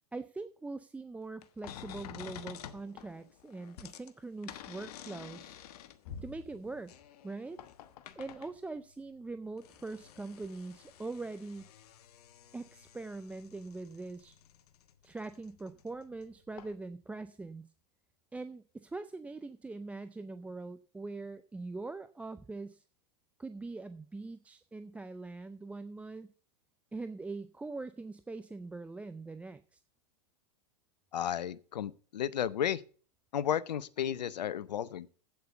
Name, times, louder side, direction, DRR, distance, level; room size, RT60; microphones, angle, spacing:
voice 1, 0.1-5.6 6.2-6.9 7.2-7.6 8.2-11.6 12.5-14.4 15.0-17.7 18.3-22.8 23.4-26.3 26.9-29.8, right 3 dB, 5° right, 0.4 m, -42 dB
sound 1, 1.4-8.6 9.3-16.3 16.5-16.8, left 9 dB, 65° left, 1.2 m, -50 dB
voice 2, 31.1-32.8 33.3-35.1, left 10 dB, 85° left, 0.8 m, -33 dB
8.7 x 8.0 x 6.7 m
hypercardioid pair, 110°, 21 cm